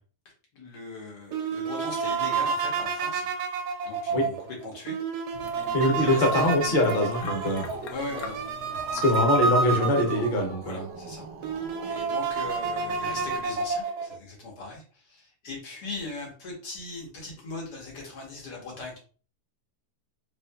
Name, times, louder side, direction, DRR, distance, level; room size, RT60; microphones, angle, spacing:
voice 1, 0.5-3.3 3.8-5.0 6.0-6.5 7.9-9.0 10.6-11.3 11.8-19.0, left 3 dB, 90° left, -2 dB, 1.8 m, -39 dB
sound 1, 1.3-10.6 11.1-11.2 11.4-14.2, right 4 dB, 85° right, 1.2 m, -29 dB
sound 2, 5.3-10.4, left 5 dB, 75° left, 1.0 m, -42 dB
voice 2, 5.7-7.7 8.9-10.9, left 1 dB, 40° left, 1 dB, 0.8 m, -23 dB
Growling, 6.6-13.4, right 4 dB, 65° right, 1.0 m, -42 dB
3.7 x 2.8 x 2.3 m, 0.39 s
omnidirectional pair, 1.7 m